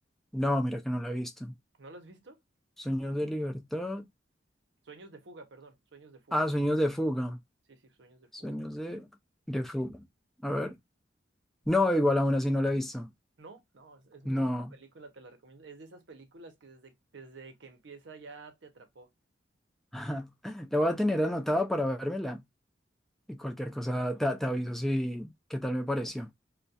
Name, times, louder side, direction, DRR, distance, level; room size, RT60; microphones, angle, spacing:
voice 1, 0.3-1.6 2.8-4.0 6.3-7.4 8.3-9.1 9.5-10.0 10.4-10.8 11.7-13.1 14.3-14.8 19.9-22.4 23.3-26.3, left 1 dB, ahead, 0.3 m, -29 dB
voice 2, 1.8-2.4 4.8-6.4 7.7-8.6 13.4-14.4 14.7-19.1, right 3 dB, 70° right, 0.7 m, -51 dB
2.3 x 2.1 x 2.6 m
head